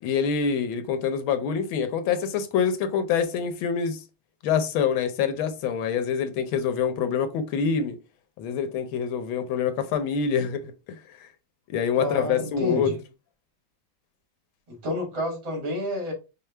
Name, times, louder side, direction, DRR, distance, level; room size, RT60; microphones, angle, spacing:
voice 1, 0.0-4.0 4.4-8.0 8.4-10.7 11.7-12.9, left 7 dB, 80° left, 1.4 m, -25 dB
voice 2, 12.0-13.0 14.7-16.1, left 1 dB, 75° right, 2.6 m, -30 dB
5.4 x 2.1 x 3.3 m
omnidirectional pair, 2.2 m